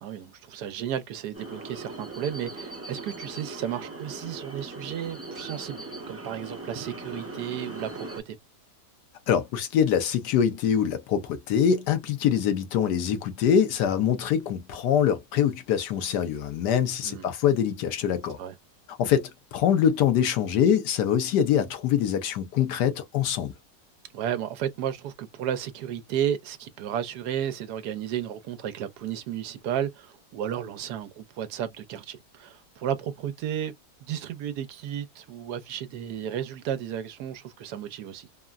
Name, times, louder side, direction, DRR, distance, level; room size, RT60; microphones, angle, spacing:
voice 1, 0.0-5.8 6.1-8.4 17.0-17.3 18.4-18.5 24.1-33.7 34.0-38.3, right 10 dB, 75° right, 1.1 m, -33 dB
sound 1, 1.3-8.2, right 2 dB, 15° right, 0.4 m, -39 dB
voice 2, 9.3-18.4 18.9-23.5, left 8 dB, 75° left, 1.3 m, -24 dB
3.7 x 2.1 x 2.3 m
omnidirectional pair, 1.9 m